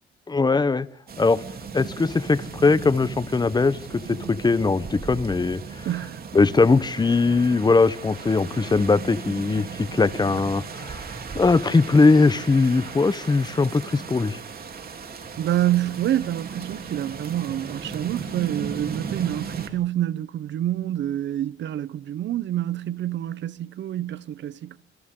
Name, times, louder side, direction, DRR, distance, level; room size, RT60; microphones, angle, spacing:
voice 1, 0.3-0.9 1.2-1.4 1.7-3.8 4.1-5.9 6.3-14.4, left 3 dB, 20° left, 0.9 m, -20 dB
sound 1, 1.1-19.7, right 5 dB, 50° right, 3.3 m, -36 dB
voice 2, 5.8-6.2 15.4-24.8, right 12 dB, 65° right, 0.9 m, -27 dB
27.5 x 27.0 x 3.8 m
cardioid pair, 90°, 20 cm